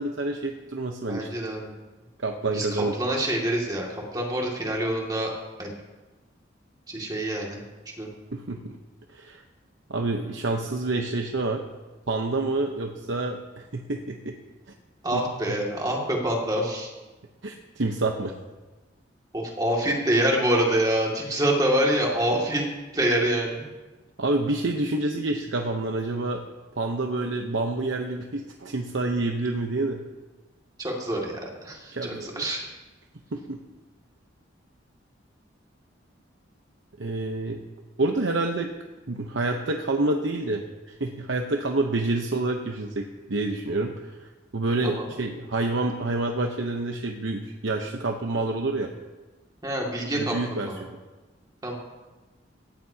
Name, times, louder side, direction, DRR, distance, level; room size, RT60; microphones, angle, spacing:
voice 1, 0.0-1.3 2.2-2.9 8.3-8.8 9.1-9.4 9.9-11.6 12.1-14.3 15.1-15.2 17.4-18.3 24.2-26.4 26.8-30.0 31.9-32.5 33.3-33.6 37.0-37.6 38.0-38.7 39.1-48.9 50.1-51.0, right 2 dB, 80° right, 3 dB, 0.9 m, -28 dB
voice 2, 1.1-1.7 2.5-5.3 5.6-5.7 6.9-7.6 8.0-8.1 15.0-16.9 19.3-22.7 22.9-23.7 30.8-32.6 44.8-45.1 49.6-50.8 51.6-51.8, right 1 dB, 20° right, -1 dB, 2.2 m, -26 dB
17.5 x 14.5 x 2.9 m, 1.2 s
head